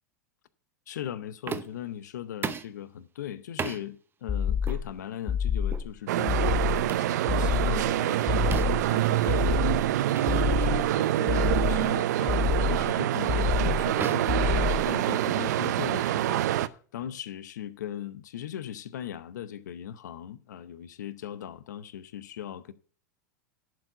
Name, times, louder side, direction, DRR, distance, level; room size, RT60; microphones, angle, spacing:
voice 1, 0.9-9.6 10.2-22.7, left 10 dB, 80° left, 0.7 m, -39 dB
sound 1, 1.5-1.9 2.4-2.8 3.6-3.8 4.6-4.8 5.7-5.9 6.9-7.1 8.5-8.9 10.1-10.3 10.7-10.9 11.6-11.9 12.8-13.0 14.0-15.2, right 6 dB, 25° right, 0.8 m, -36 dB
sound 2, 4.3-4.9 5.3-5.9 6.3-6.9 7.3-7.9 8.3-8.9 9.3-9.9 10.3-10.9 11.3-11.9 12.3-12.9 13.3-13.9 14.3-14.9, left 8 dB, 25° left, 0.6 m, -28 dB
sound 3, 6.1-16.7, right 13 dB, 70° right, 0.5 m, -26 dB
11.0 x 4.8 x 7.8 m
hypercardioid pair, 95°, 9 cm